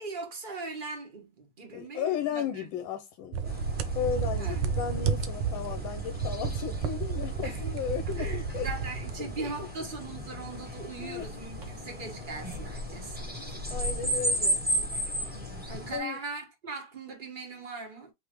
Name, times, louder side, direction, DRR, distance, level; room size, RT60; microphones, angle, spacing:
voice 1, 0.0-2.7 4.4-4.6 7.4-7.6 8.2-13.2 15.7-18.1, right 3 dB, 30° right, 1.3 m, -40 dB
voice 2, 1.7-3.6 3.9-8.7 9.2-9.5 11.0-11.3 13.7-14.6 15.9-16.2, left 8 dB, 75° left, 1.3 m, -34 dB
sound 1, 3.3-9.7, right 6 dB, 90° right, 1.6 m, -32 dB
sound 2, 3.4-16.0, equal, 5° right, 0.7 m, -35 dB
sound 3, 10.6-15.8, equal, 50° right, 1.4 m, -42 dB
4.9 x 3.4 x 3.0 m
omnidirectional pair, 2.3 m